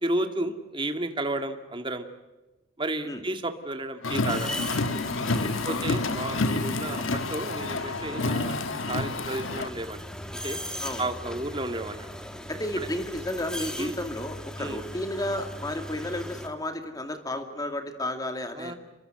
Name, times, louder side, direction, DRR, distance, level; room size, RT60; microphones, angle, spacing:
voice 1, 0.0-2.1 2.8-4.6 5.3-10.0 10.3-10.6 11.0-12.2 13.8-14.0 14.6-14.8 18.5-18.7, right 2 dB, 25° right, 7 dB, 2.1 m, -32 dB
Car, 4.0-9.7, left 3 dB, 85° left, 1.3 m, -29 dB
sound 1, 4.3-16.5, equal, 5° left, 2.2 m, -39 dB
voice 2, 5.4-5.8 10.8-11.1 12.5-18.7, left 1 dB, 20° left, 6 dB, 2.3 m, -32 dB
28.5 x 23.5 x 7.8 m, 1.1 s
head